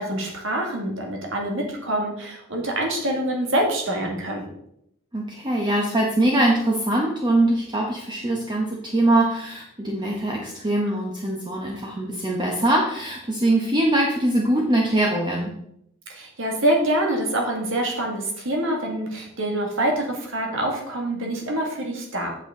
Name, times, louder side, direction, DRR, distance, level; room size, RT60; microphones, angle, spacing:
voice 1, 0.0-4.5 16.1-22.3, right 1 dB, 65° right, 0 dB, 2.1 m, -25 dB
voice 2, 5.1-15.5, right 1 dB, 20° right, -2 dB, 1.0 m, -22 dB
7.9 x 7.9 x 3.8 m, 0.76 s
head